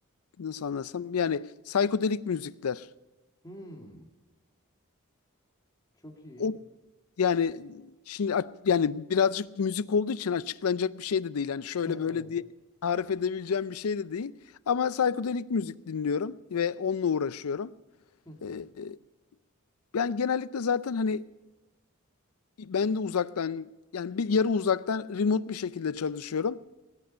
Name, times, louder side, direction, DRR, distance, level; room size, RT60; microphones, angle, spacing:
voice 1, 0.4-2.9 6.4-6.6 7.2-12.4 12.8-14.4 14.7-17.7 18.4-19.0 19.9-21.3 22.6-23.7 23.9-26.6, left 6 dB, 85° left, 0.5 m, -28 dB
voice 2, 3.4-4.1 5.9-6.6 11.8-12.3 18.3-18.6, equal, 20° left, 2.1 m, -46 dB
19.5 x 10.5 x 5.5 m
head